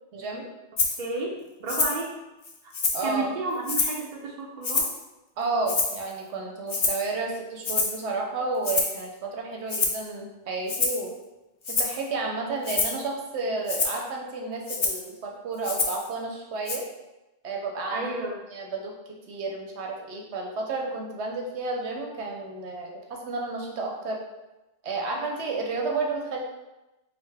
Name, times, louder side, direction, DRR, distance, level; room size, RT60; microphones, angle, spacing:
voice 1, 0.1-0.5 2.9-3.3 5.4-11.1 11.7-16.8 17.4-18.1 18.5-18.9 19.3-24.2 24.8-26.4, right 3 dB, 85° right, 1 dB, 0.9 m, -31 dB
Rattle (instrument), 0.8-1.0 1.7-2.0 2.4-3.1 3.7-4.0 4.6-5.0 5.7-6.1 6.7-7.1 7.6-8.0 8.6-9.0 9.7-10.0 10.7-11.1 11.6-12.0 12.6-13.0 13.7-14.0 14.7-15.1 15.6-16.1 16.7-16.8, left 4 dB, 55° left, 0.3 m, -27 dB
voice 2, 1.0-2.2 3.0-4.9 17.9-18.5, right 2 dB, 45° right, -2 dB, 0.8 m, -32 dB
5.1 x 2.1 x 3.3 m, 1.0 s
omnidirectional pair, 1.1 m